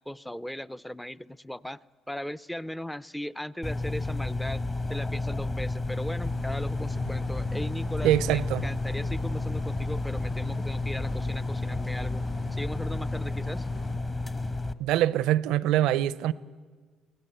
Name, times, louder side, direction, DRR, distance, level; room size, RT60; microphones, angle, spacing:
voice 1, 0.1-1.8 2.1-4.6 4.9-12.3 12.5-13.7, equal, 5° left, 0.5 m, -38 dB
sound 1, 3.6-14.7, left 2 dB, 20° left, 1.1 m, -31 dB
sound 2, 6.2-13.9, left 2 dB, 65° left, 6.1 m, -44 dB
voice 2, 8.0-8.7 14.8-16.3, right 13 dB, 75° right, 0.6 m, -24 dB
23.0 x 17.0 x 8.0 m
supercardioid pair, 75°, 0 cm